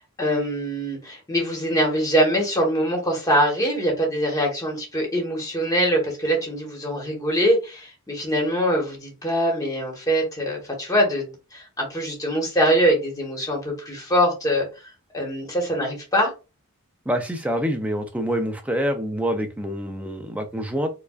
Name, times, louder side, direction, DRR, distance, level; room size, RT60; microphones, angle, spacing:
voice 1, 0.2-14.7 15.1-16.3, equal, 15° left, 1.3 m, -23 dB
voice 2, 17.1-20.9, equal, 5° right, 0.4 m, -26 dB
4.6 x 2.4 x 2.4 m
head